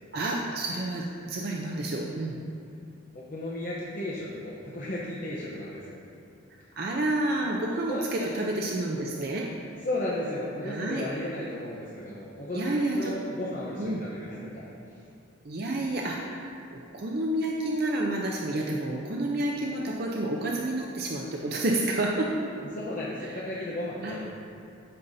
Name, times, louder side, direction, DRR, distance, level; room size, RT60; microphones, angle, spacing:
voice 1, 0.1-2.4 6.8-9.5 10.6-11.1 12.5-13.1 13.8-14.0 15.5-16.5 16.9-22.3 23.2-23.4 24.0-24.2, right 1 dB, 50° right, -1 dB, 0.5 m, -29 dB
voice 2, 3.1-6.0 7.9-8.3 9.8-14.7 15.9-16.0 22.5-24.2, left 1 dB, 40° left, -6 dB, 0.8 m, -34 dB
13.0 x 5.5 x 2.7 m, 2.5 s
head